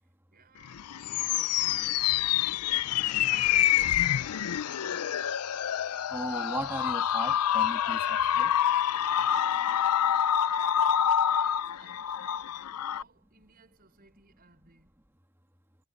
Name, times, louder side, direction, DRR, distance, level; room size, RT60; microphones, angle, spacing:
voice 1, 0.3-4.4 9.1-14.9, right 4 dB, 45° right, 5.5 m, -60 dB
sound 1, 0.6-13.0, left 10 dB, 90° left, 0.5 m, -27 dB
voice 2, 6.1-8.5, right 1 dB, 10° right, 2.0 m, -37 dB
head